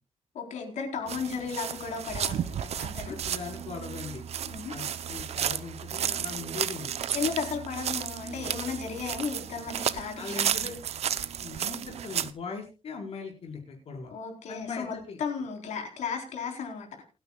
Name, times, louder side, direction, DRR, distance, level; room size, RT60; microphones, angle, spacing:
voice 1, 0.3-3.2 4.5-4.7 7.1-10.7 14.1-17.0, left 6 dB, 80° left, 3 dB, 4.2 m, -35 dB
sound 1, 1.1-12.3, right 9 dB, 60° right, 0.8 m, -33 dB
voice 2, 3.0-4.2 4.7-6.9 10.2-10.8 11.4-14.1 14.5-15.2, left 5 dB, 55° left, 1 dB, 5.1 m, -39 dB
28.0 x 9.7 x 2.4 m, 0.31 s
wide cardioid pair, 150°, 12 cm